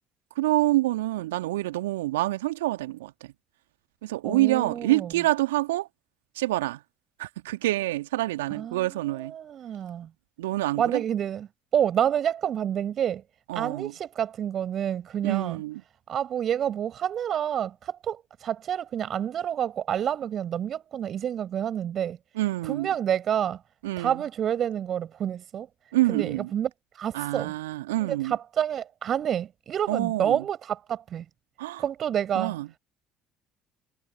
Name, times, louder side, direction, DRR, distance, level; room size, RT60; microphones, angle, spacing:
voice 1, 0.4-3.1 4.0-5.9 6.4-6.8 7.2-9.3 10.4-11.0 13.5-13.9 15.2-15.8 22.4-22.9 23.8-24.1 25.9-26.5 27.1-28.3 29.9-30.4 31.6-31.8 32.4-32.7, right 17 dB, 75° right, 2.0 m, -26 dB
voice 2, 4.2-5.1 8.5-10.1 10.8-11.5 11.7-13.2 13.5-15.6 16.1-22.2 22.6-23.6 24.0-25.7 26.1-27.5 28.0-31.3 31.8-32.6, right 9 dB, 45° right, 7.7 m, -28 dB
figure-of-eight pair, 55°, 0 cm